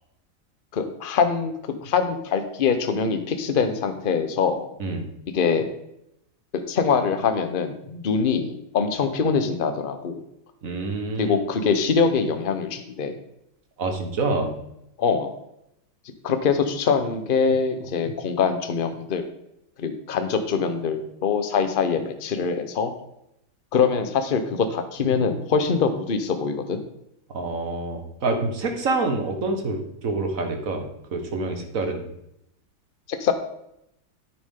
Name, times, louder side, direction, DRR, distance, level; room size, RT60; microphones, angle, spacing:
voice 1, 0.7-1.5 1.8-4.7 5.3-5.7 6.5-10.2 11.2-13.1 15.0-15.3 16.2-19.2 19.8-22.9 23.7-26.8 33.1-33.3, left 5 dB, 40° left, 8 dB, 0.8 m, -23 dB
voice 2, 10.6-11.4 13.8-14.6 27.3-30.9 31.1-32.0, right 3 dB, 45° right, 4 dB, 1.7 m, -27 dB
10.0 x 9.4 x 3.8 m, 0.79 s
omnidirectional pair, 2.3 m